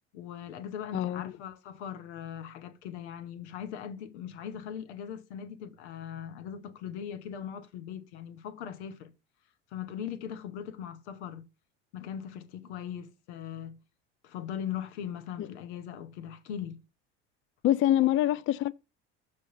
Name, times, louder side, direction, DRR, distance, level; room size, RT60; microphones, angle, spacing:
voice 1, 0.1-9.1 9.7-11.5 11.9-13.8 14.2-16.8 18.0-18.1, left 9 dB, 90° left, 0.9 m, -40 dB
voice 2, 0.9-1.3 15.4-15.5 17.6-18.7, left 13 dB, 40° left, 0.4 m, -25 dB
6.6 x 3.4 x 5.5 m
supercardioid pair, 75°, 33 cm